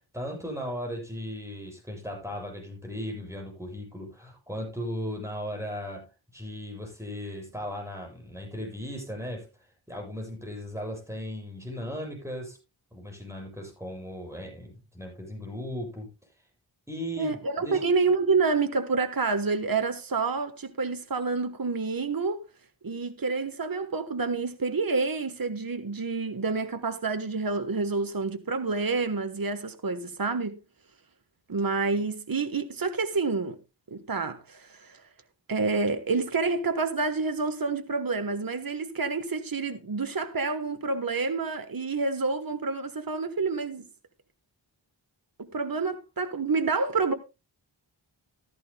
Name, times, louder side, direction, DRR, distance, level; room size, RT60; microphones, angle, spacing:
voice 1, 0.1-12.6 12.9-16.1 16.9-17.8, equal, 5° right, 7.7 m, -37 dB
voice 2, 17.2-22.4 22.8-30.6 31.5-33.6 33.9-35.0 35.5-43.8 45.4-47.1, right 4 dB, 45° right, 1.2 m, -28 dB
15.5 x 13.5 x 2.2 m
wide cardioid pair, 45°, 47 cm